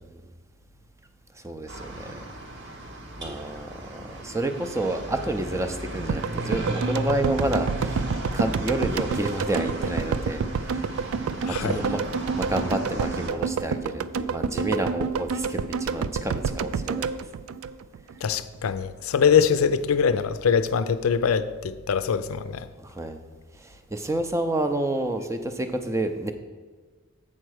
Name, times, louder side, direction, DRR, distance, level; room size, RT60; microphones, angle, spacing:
voice 1, 1.4-2.2 3.2-8.1 8.3-10.9 11.4-12.0 12.3-17.1 22.8-23.2 23.6-26.3, right 1 dB, 15° right, 0.5 m, -29 dB
sound 1, 1.7-13.3, right 1 dB, 55° right, 1.2 m, -35 dB
sound 2, 6.1-18.3 18.6-18.7, right 5 dB, 80° right, 0.3 m, -29 dB
voice 2, 11.5-11.8 18.2-22.7, left 6 dB, 80° left, 0.4 m, -23 dB
7.5 x 4.5 x 6.3 m
head